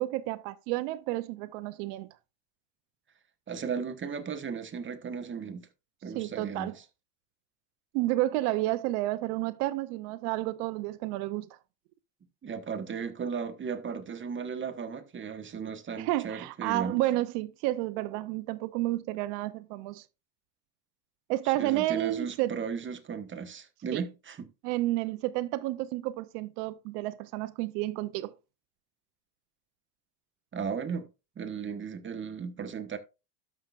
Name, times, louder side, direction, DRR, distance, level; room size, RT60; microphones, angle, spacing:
voice 1, 0.0-2.1 6.1-6.8 7.9-11.5 16.0-20.0 21.3-22.5 23.9-24.0 24.6-28.3, right 16 dB, 70° right, 0.7 m, -31 dB
voice 2, 3.5-5.7 6.0-6.8 12.4-17.0 21.5-24.5 30.5-31.1 31.4-33.0, right 6 dB, 25° right, 1.3 m, -36 dB
12.5 x 5.9 x 2.5 m
supercardioid pair, 105°, 49 cm